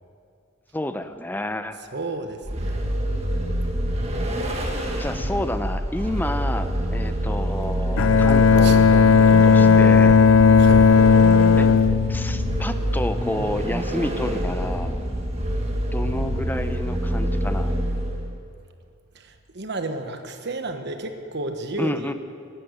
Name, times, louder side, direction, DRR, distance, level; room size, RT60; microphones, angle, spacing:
voice 1, 0.7-1.8 5.0-10.2 11.6-11.7 12.1-15.0 15.9-17.7 21.8-22.1, left 1 dB, 10° left, 9 dB, 0.6 m, -30 dB
voice 2, 1.9-2.8 8.6-8.8 10.6-10.9 19.1-22.1, right 2 dB, 60° right, 6 dB, 1.3 m, -32 dB
Vehicle, 2.4-18.4, equal, 30° right, 1.7 m, -26 dB
Bowed string instrument, 8.0-13.0, left 5 dB, 80° left, 0.4 m, -15 dB
15.5 x 11.5 x 8.0 m, 2.4 s
head